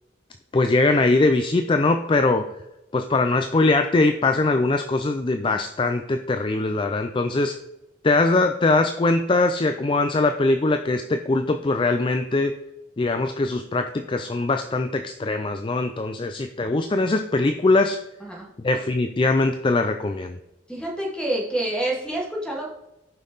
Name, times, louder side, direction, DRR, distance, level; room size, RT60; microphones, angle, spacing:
voice 1, 0.5-2.5 2.9-7.5 8.0-12.5 13.0-18.0 18.6-20.4, left 2 dB, 25° left, 7 dB, 0.4 m, -21 dB
voice 2, 20.7-22.7, right 1 dB, 5° left, -3 dB, 2.0 m, -27 dB
12.0 x 5.5 x 4.0 m, 0.95 s
head